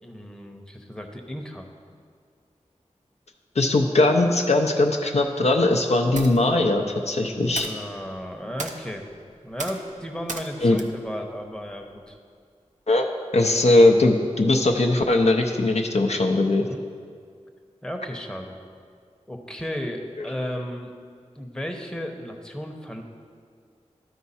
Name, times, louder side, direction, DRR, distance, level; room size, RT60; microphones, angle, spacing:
voice 1, 0.0-1.7 7.2-9.0 9.4-12.2 16.7-16.8 17.8-18.6 19.3-20.9 21.4-23.0, equal, 5° left, 2 dB, 0.8 m, -34 dB
voice 2, 3.6-7.7 10.6-10.8 12.9-13.1 13.3-16.7, left 2 dB, 60° left, 3 dB, 0.6 m, -20 dB
sound 1, 6.0-12.2, right 3 dB, 85° right, 0.6 m, -40 dB
12.5 x 4.6 x 4.2 m, 2.1 s
wide cardioid pair, 50°, 12 cm